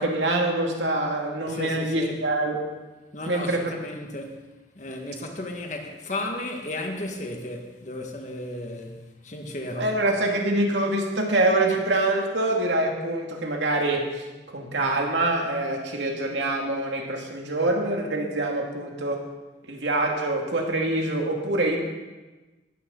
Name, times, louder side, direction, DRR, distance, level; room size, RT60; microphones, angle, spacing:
voice 1, 0.0-2.7 3.3-3.7 9.8-19.3 19.7-21.8, right 2 dB, 90° right, 2.6 m, -25 dB
voice 2, 1.5-2.2 3.1-4.4 4.8-9.9, left 1 dB, 40° left, 1.9 m, -34 dB
19.0 x 13.5 x 4.1 m
head